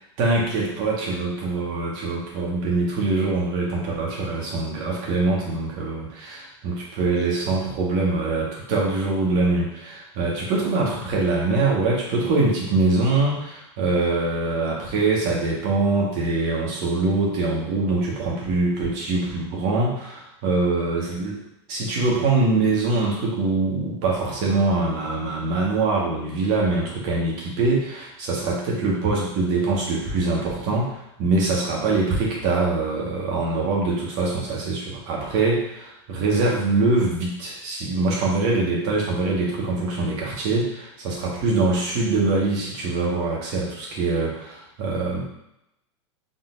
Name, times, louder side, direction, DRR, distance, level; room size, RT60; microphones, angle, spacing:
voice 1, 0.2-21.4 21.7-45.2, right 3 dB, 50° right, -3 dB, 1.6 m, -23 dB
4.0 x 3.8 x 2.6 m, 0.82 s
supercardioid pair, 120°, 15 cm